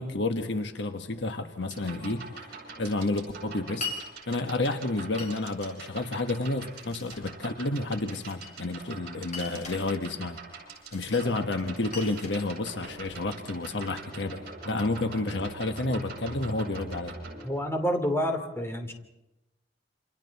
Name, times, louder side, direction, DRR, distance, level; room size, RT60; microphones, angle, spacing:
voice 1, 0.0-2.3 2.8-3.9 4.3-10.4 10.9-17.1, left 2 dB, 70° left, 1.3 m, -30 dB
sound 1, 1.6-17.4, right 3 dB, 55° right, 7.9 m, -44 dB
Glass, 3.8-4.0 5.2-5.7 6.6-7.3 8.1-8.8 9.3-9.8 10.9-11.3 11.6-13.2, left 3 dB, 40° left, 5.3 m, -40 dB
voice 2, 17.4-18.9, equal, 15° left, 2.9 m, -28 dB
28.5 x 27.5 x 4.2 m
head